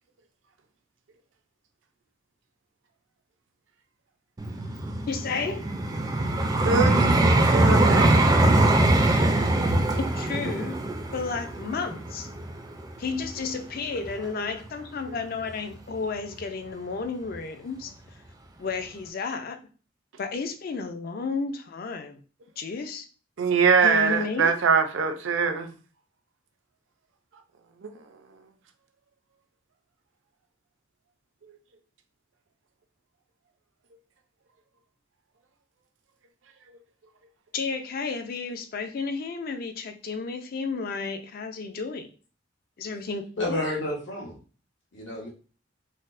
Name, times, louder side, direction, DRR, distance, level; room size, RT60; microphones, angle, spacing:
Vehicle, 4.4-13.5 14.1-14.3, right 1 dB, 20° right, 0.3 m, -22 dB
voice 1, 5.1-5.7 10.0-10.8 11.1-12.3 13.0-17.9 18.6-19.6 20.2-22.2 22.6-23.1 23.8-24.5 37.5-42.1 42.8-43.6, left 4 dB, 50° left, 0.4 m, -32 dB
voice 2, 6.6-8.2 23.4-25.7 27.8-27.9, right 5 dB, 85° right, 0.5 m, -23 dB
voice 3, 43.4-44.4 44.9-45.3, left 1 dB, 70° left, 1.0 m, -30 dB
4.1 x 2.1 x 2.5 m
head